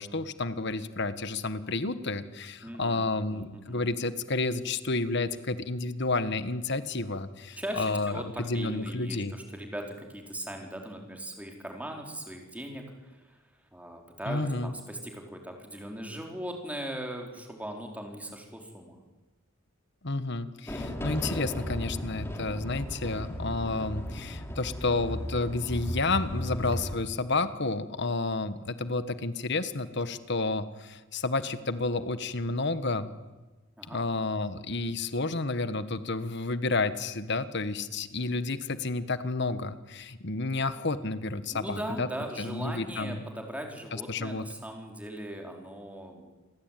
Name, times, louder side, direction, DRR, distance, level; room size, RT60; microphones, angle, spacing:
voice 1, 0.0-9.3 14.3-14.7 20.0-33.1 33.9-42.1 42.4-43.2 43.9-44.4, left 3 dB, 55° left, 12 dB, 1.5 m, -31 dB
voice 2, 2.6-3.8 7.6-13.4 13.7-19.0 33.8-34.0 41.5-46.3, right 1 dB, 5° right, 2 dB, 4.6 m, -39 dB
sound 1, 20.7-27.0, equal, 10° left, 3.4 m, -35 dB
29.0 x 22.5 x 9.3 m, 1.2 s
head